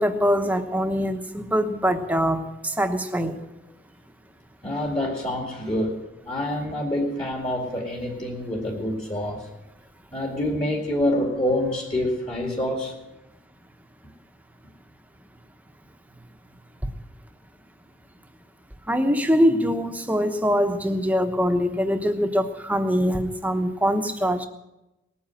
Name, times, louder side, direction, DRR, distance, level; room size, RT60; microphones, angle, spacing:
voice 1, 0.0-3.4 18.9-24.5, equal, 10° right, 7 dB, 1.0 m, -23 dB
voice 2, 4.6-6.0 6.2-9.5 10.1-12.9, left 1 dB, 30° left, 0 dB, 2.3 m, -26 dB
19.5 x 9.3 x 7.8 m, 0.96 s
head